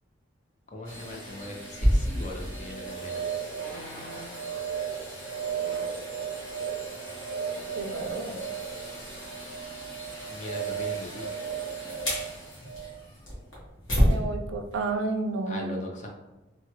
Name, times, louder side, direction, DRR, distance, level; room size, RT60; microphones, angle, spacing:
voice 1, 0.7-3.5 10.3-11.3 15.5-16.1, left 1 dB, 35° left, 1 dB, 0.5 m, -39 dB
sound 1, 0.9-14.2 14.7-14.8, right 2 dB, 90° left, 1.4 m, -31 dB
sound 2, 3.5-4.5 5.6-6.1 7.0-7.2 7.5-7.8 8.3-8.4, left 1 dB, 55° left, 0.9 m, -46 dB
voice 2, 7.8-8.4 14.0-15.7, right 3 dB, 75° right, 6 dB, 0.3 m, -31 dB
3.2 x 2.3 x 3.0 m, 1.1 s
head